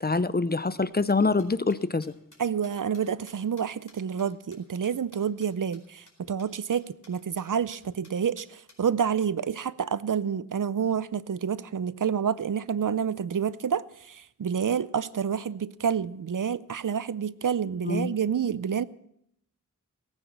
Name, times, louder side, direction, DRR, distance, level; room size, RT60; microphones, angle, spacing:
voice 1, 0.0-2.1 17.9-18.1, left 3 dB, 30° left, 0.6 m, -25 dB
sound 1, 0.8-5.5 5.7-5.8 6.1-6.2 6.4-6.5 6.7-7.1 7.4-7.5 7.7-8.8, left 2 dB, 70° left, 4.6 m, -56 dB
voice 2, 2.4-18.8, right 7 dB, 75° right, 0.5 m, -28 dB
18.0 x 9.1 x 7.1 m
wide cardioid pair, 65°, 32 cm